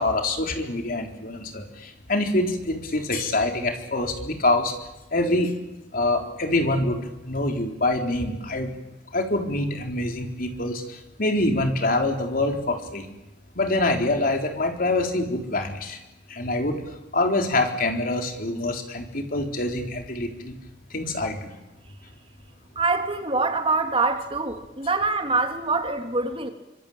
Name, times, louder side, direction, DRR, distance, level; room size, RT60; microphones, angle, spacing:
voice 1, 0.0-4.7 5.1-5.5 5.9-7.0 7.2-8.7 9.1-10.8 11.2-13.1 13.6-16.0 16.3-16.8 17.1-20.5 20.9-21.5, left 2 dB, 50° left, 3 dB, 3.9 m, -25 dB
voice 2, 22.7-26.5, right 3 dB, 30° right, 5 dB, 3.0 m, -24 dB
26.5 x 25.5 x 8.7 m, 0.99 s
head